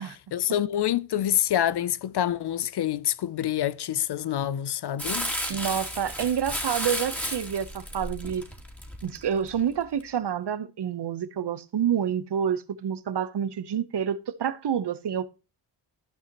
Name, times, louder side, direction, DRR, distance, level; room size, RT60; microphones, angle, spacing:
voice 1, 0.0-5.3, left 11 dB, 55° left, 0.5 m, -27 dB
Crumpling crinkling, 5.0-9.5 10.0-10.1, equal, 5° left, 2.6 m, -33 dB
voice 2, 5.5-8.5 9.0-15.2, right 8 dB, 55° right, 0.9 m, -28 dB
13.5 x 5.7 x 3.0 m
cardioid pair, 80°, 48 cm